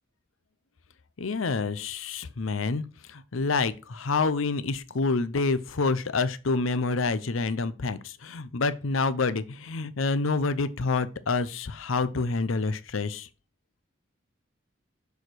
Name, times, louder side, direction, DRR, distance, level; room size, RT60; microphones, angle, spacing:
voice 1, 1.2-2.8 3.1-13.3, left 3 dB, 85° left, 0.7 m, -27 dB
7.0 x 4.9 x 6.2 m
head